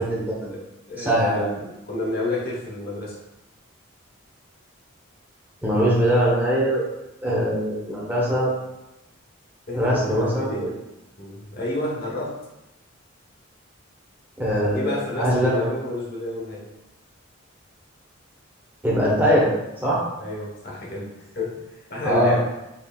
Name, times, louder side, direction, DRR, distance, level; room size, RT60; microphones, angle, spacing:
voice 1, 0.0-0.5 1.0-1.5 5.6-6.8 7.2-8.5 9.7-10.7 14.4-15.7 18.8-19.5 19.8-20.0 22.0-22.3, equal, 10° right, -6 dB, 1.0 m, -21 dB
voice 2, 0.5-3.2 7.2-7.5 9.7-10.8 11.2-12.4 14.7-16.7 20.2-22.4, left 2 dB, 45° left, -4 dB, 1.0 m, -30 dB
4.5 x 3.2 x 2.3 m, 0.95 s
head